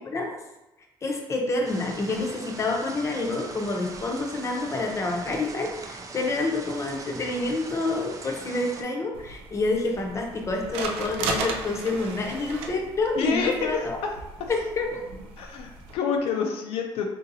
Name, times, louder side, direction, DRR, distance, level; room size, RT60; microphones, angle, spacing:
voice 1, 1.0-14.0 14.5-15.0, left 2 dB, 30° left, 1 dB, 0.7 m, -28 dB
sound 1, 1.6-8.8, right 3 dB, 35° right, 0.4 m, -41 dB
sound 2, 9.1-15.9, right 3 dB, 90° right, 0.4 m, -36 dB
voice 2, 13.2-14.5 15.4-17.0, left 6 dB, 85° left, 2 dB, 0.4 m, -28 dB
3.8 x 2.7 x 2.6 m, 0.97 s
cardioid pair, 115°, 10 cm